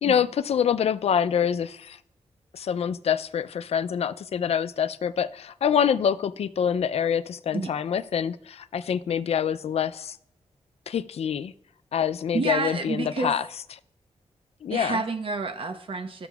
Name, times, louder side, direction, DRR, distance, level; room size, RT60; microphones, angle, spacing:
voice 1, 0.0-2.0 2.5-10.2 10.9-11.5 11.9-13.4 14.6-15.0, left 8 dB, 65° left, 13 dB, 0.4 m, -26 dB
voice 2, 12.3-13.4 14.7-16.3, right 3 dB, 50° right, 8 dB, 0.9 m, -29 dB
13.0 x 6.8 x 2.3 m, 0.67 s
cardioid pair, 85°, 11 cm